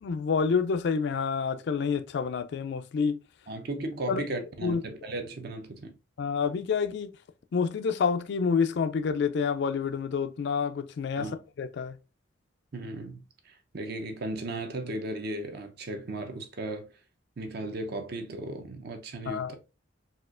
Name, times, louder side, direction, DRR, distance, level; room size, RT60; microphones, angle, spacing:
voice 1, 0.0-3.2 4.1-4.2 4.6-4.8 6.2-7.1 7.5-11.3 11.6-12.0 19.3-19.6, left 5 dB, 60° left, 0.3 m, -28 dB
voice 2, 3.5-6.0 11.2-11.4 12.7-16.9 17.4-19.6, right 2 dB, 55° right, 0.6 m, -36 dB
4.2 x 2.4 x 2.4 m
head